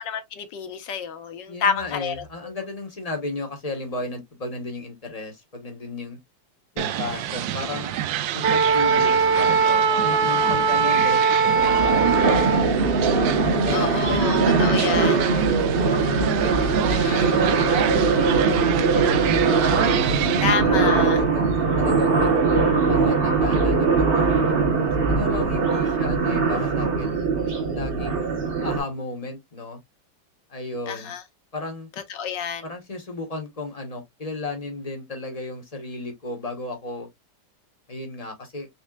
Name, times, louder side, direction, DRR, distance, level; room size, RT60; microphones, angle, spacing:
voice 1, 0.0-2.2 13.7-15.2 16.9-17.4 20.4-21.2 30.9-31.2 32.1-32.7, left 6 dB, 70° left, 1.3 m, -28 dB
voice 2, 1.5-6.2 6.7-7.9 8.3-9.6 10.0-12.7 13.4-14.5 14.8-16.8 17.1-19.8 20.3-22.5 22.9-27.1 27.7-28.3 28.6-29.8 30.5-31.1 31.5-31.9 32.6-37.1 37.9-38.7, left 2 dB, 30° left, 0.7 m, -34 dB
sound 1, 6.8-20.5, right 10 dB, 80° right, 1.3 m, -28 dB
Wind instrument woodwind instrument, 8.4-12.7, right 5 dB, 65° right, 0.6 m, -20 dB
sound 2, 11.5-28.8, right 4 dB, 40° right, 0.9 m, -21 dB
4.3 x 3.6 x 2.3 m
omnidirectional pair, 2.1 m